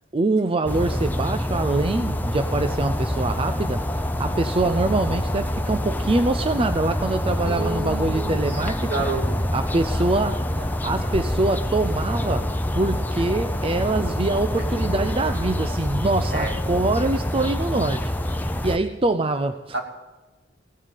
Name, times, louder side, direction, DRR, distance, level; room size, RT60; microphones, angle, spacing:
voice 1, 0.1-8.9 9.5-19.8, right 2 dB, 30° right, 9 dB, 0.5 m, -24 dB
sound 1, 0.7-18.8, left 1 dB, 10° left, 0.8 m, -26 dB
voice 2, 7.4-9.4 16.3-16.5 19.7-19.8, right 3 dB, 65° right, 1 dB, 2.8 m, -30 dB
17.0 x 8.6 x 9.1 m, 1.2 s
head